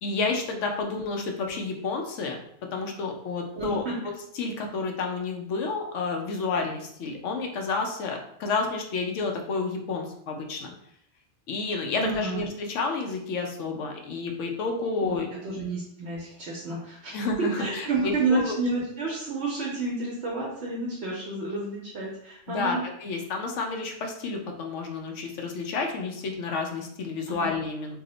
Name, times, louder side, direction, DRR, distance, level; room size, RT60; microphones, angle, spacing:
voice 1, 0.0-2.4 2.7-3.8 4.4-10.7 11.5-15.3 17.1-18.4 22.5-28.0, left 4 dB, 90° left, 2 dB, 0.9 m, -30 dB
voice 2, 3.6-3.9 12.0-12.4 15.0-15.2 15.4-17.2 17.6-22.8 27.4-27.5, right 3 dB, 70° right, -3 dB, 0.9 m, -30 dB
2.8 x 2.0 x 3.7 m, 0.72 s
omnidirectional pair, 1.2 m